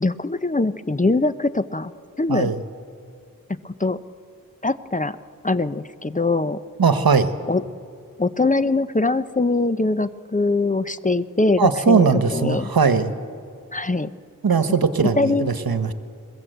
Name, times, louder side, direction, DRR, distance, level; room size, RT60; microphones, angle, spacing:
voice 1, 0.0-1.9 2.2-2.5 3.5-4.0 4.6-5.2 5.4-6.6 7.5-7.6 8.2-12.1 12.3-12.7 13.7-14.1 15.1-15.5, left 3 dB, 20° left, 13 dB, 0.6 m, -22 dB
voice 2, 2.3-2.6 6.8-7.3 11.6-13.1 14.4-15.9, right 5 dB, 85° right, 11 dB, 1.1 m, -19 dB
22.0 x 21.5 x 7.9 m, 2.4 s
wide cardioid pair, 55°, 35 cm